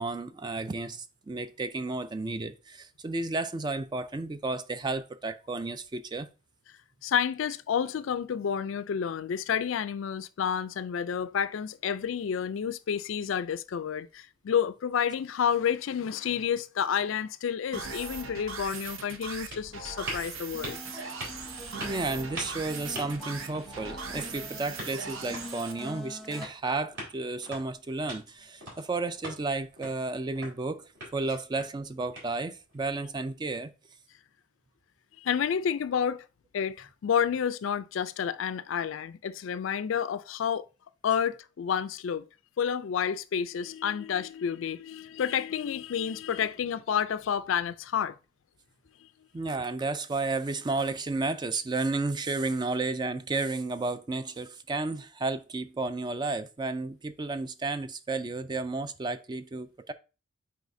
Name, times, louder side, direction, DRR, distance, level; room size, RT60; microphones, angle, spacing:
voice 1, 0.0-6.3 21.8-33.7 49.3-59.9, right 3 dB, 20° right, 0.3 m, -32 dB
voice 2, 7.0-20.8 35.2-36.3 36.5-40.7 41.0-42.3 42.6-48.2, left 8 dB, 65° left, 0.4 m, -30 dB
sound 1, 17.7-25.7, right 4 dB, 80° right, 0.8 m, -40 dB
sound 2, 18.8-32.7, right 1 dB, 60° right, 3.9 m, -45 dB
sound 3, 20.5-26.5, left 2 dB, ahead, 1.0 m, -45 dB
8.1 x 4.6 x 2.6 m
head